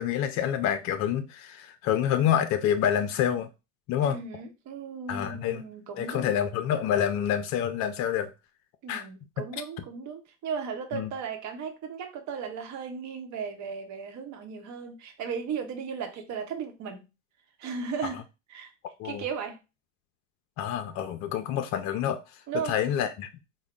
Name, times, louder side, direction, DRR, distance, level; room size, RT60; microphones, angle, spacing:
voice 1, 0.0-3.5 3.9-4.2 5.1-5.6 6.0-8.3 8.9-9.0 10.9-11.1 19.0-19.2 20.6-22.2 22.7-23.3, left 9 dB, 45° left, 0.5 m, -27 dB
voice 2, 4.0-6.4 8.8-17.1 17.6-18.2 18.5-18.7 19.0-19.6 22.5-22.7, right 6 dB, 45° right, 1.0 m, -36 dB
3.6 x 2.2 x 3.6 m
hypercardioid pair, 90°, 40 cm